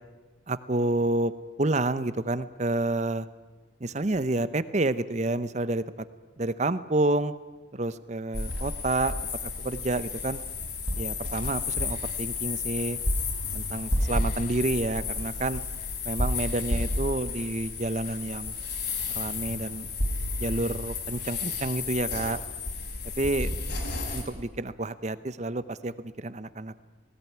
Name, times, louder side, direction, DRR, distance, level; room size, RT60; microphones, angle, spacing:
voice 1, 0.5-1.3 1.6-3.3 3.8-6.1 6.4-7.3 7.7-9.1 9.4-10.4 11.0-13.0 13.5-15.6 16.0-18.5 19.1-19.9 20.4-22.4 23.2-23.5 24.1-26.8, right 2 dB, 35° right, 15 dB, 0.8 m, -29 dB
sound 1, 8.3-24.2, left 3 dB, 60° left, 4.5 m, -31 dB
18.5 x 18.5 x 9.5 m, 1.3 s
head